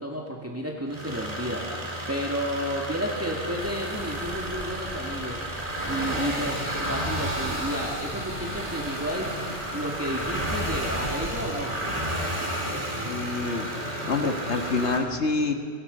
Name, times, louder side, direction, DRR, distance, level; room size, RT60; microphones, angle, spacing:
voice 1, 0.0-5.4 5.8-11.7, equal, 10° right, -1 dB, 2.4 m, -32 dB
sound 1, 0.9-15.0, right 1 dB, 35° right, 4.6 m, -32 dB
sound 2, 3.6-11.4, right 2 dB, 75° right, 2.8 m, -41 dB
voice 2, 13.0-13.7 14.0-15.5, left 3 dB, 75° left, 5 dB, 1.7 m, -27 dB
27.5 x 22.0 x 5.4 m, 2.3 s
omnidirectional pair, 1.2 m